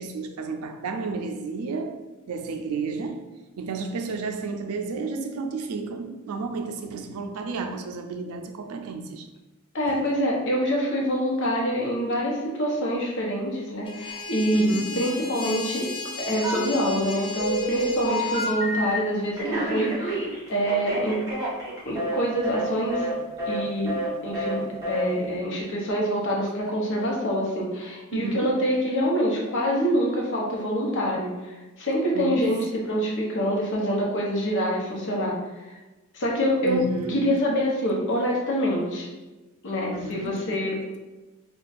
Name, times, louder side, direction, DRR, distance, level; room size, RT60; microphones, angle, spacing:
voice 1, 0.0-3.3 3.6-9.3 9.9-10.0 14.5-15.1 28.1-28.6 32.1-32.4 36.6-37.4 39.9-40.4, right 4 dB, 75° right, 0.4 m, -32 dB
voice 2, 9.7-15.9 16.2-21.2 21.8-23.1 23.5-24.0 24.2-35.4 35.6-35.8 36.1-36.8 37.1-39.1 39.6-40.7, equal, 60° left, 0.8 m, -26 dB
sound 1, 13.8-18.6, left 3 dB, 25° left, 0.3 m, -36 dB
Telephone, 16.4-17.0 17.4-19.0 19.4-22.2 22.4-22.6 22.9-23.1 23.4-23.6 23.8-24.1 24.3-24.5 24.8-25.0, right 1 dB, 15° right, 1.2 m, -28 dB
2.5 x 2.3 x 4.0 m
head